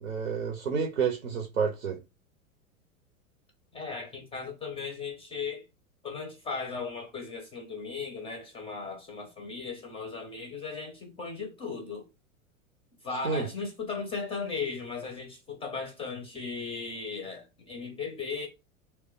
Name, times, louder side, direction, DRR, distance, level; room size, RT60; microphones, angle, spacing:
voice 1, 0.0-2.0 13.2-13.5, right 6 dB, 85° right, 0.7 m, -29 dB
voice 2, 3.7-5.6 6.0-12.1 13.0-18.5, left 4 dB, 15° left, 0.4 m, -37 dB
2.4 x 2.1 x 3.8 m
hypercardioid pair, 100°, 41 cm